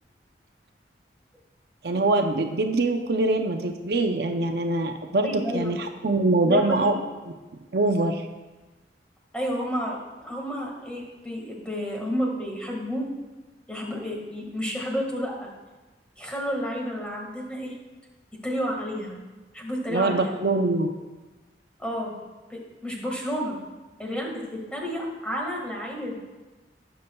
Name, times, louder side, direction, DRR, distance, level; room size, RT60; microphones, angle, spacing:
voice 1, 1.8-6.9 7.7-8.2 19.9-20.9, right 2 dB, 65° right, 5 dB, 0.6 m, -23 dB
voice 2, 5.2-5.7 6.4-6.9 9.3-10.0 10.2-13.1 13.7-15.5 16.2-17.7 18.4-19.2 19.5-20.3 21.8-22.1 22.5-23.6 24.0-26.2, equal, 5° left, -2 dB, 1.7 m, -31 dB
18.5 x 6.8 x 2.3 m, 1.2 s
head